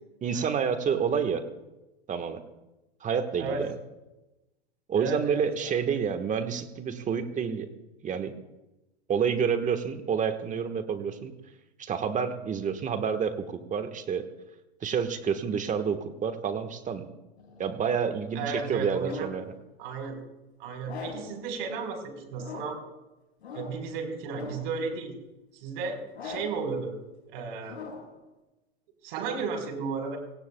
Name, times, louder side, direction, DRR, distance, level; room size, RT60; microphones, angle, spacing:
voice 1, 0.2-1.4 2.1-2.4 3.0-3.7 4.9-7.7 8.0-8.3 9.1-11.3 11.8-14.2 14.8-17.1 17.6-19.4, right 7 dB, 25° right, 8 dB, 1.3 m, -29 dB
voice 2, 5.0-5.8 18.3-19.3 19.8-20.2 20.6-22.8 23.5-25.1 25.5-26.9 27.3-27.8 29.0-30.2, right 4 dB, 60° right, 5 dB, 4.2 m, -34 dB
sound 1, 17.4-19.5 20.8-21.4 22.3-22.9 23.4-23.9 24.4-24.8 26.1-26.7 27.6-28.2, left 3 dB, 80° left, 5.4 m, -42 dB
23.0 x 17.5 x 2.3 m, 1.0 s
hypercardioid pair, 110°, 32 cm